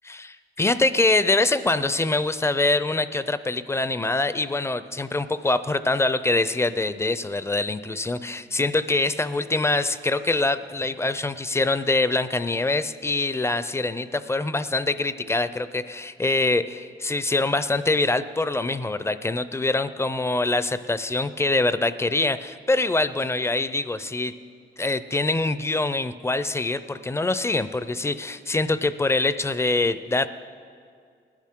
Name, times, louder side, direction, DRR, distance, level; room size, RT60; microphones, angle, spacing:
voice 1, 0.0-24.3 24.8-30.3, left 2 dB, 15° left, 13 dB, 0.4 m, -24 dB
19.5 x 12.0 x 3.7 m, 2.3 s
cardioid pair, 105°, 18 cm